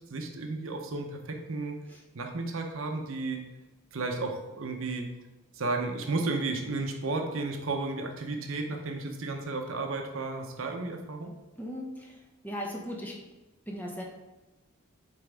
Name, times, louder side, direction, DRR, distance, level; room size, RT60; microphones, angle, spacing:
voice 1, 0.0-1.7 2.1-3.5 3.9-5.1 5.5-11.3, right 3 dB, 65° right, 3 dB, 0.7 m, -33 dB
voice 2, 11.6-12.2 12.4-13.2 13.7-14.0, equal, 10° left, -1 dB, 0.9 m, -37 dB
8.7 x 3.4 x 3.4 m, 1.1 s
head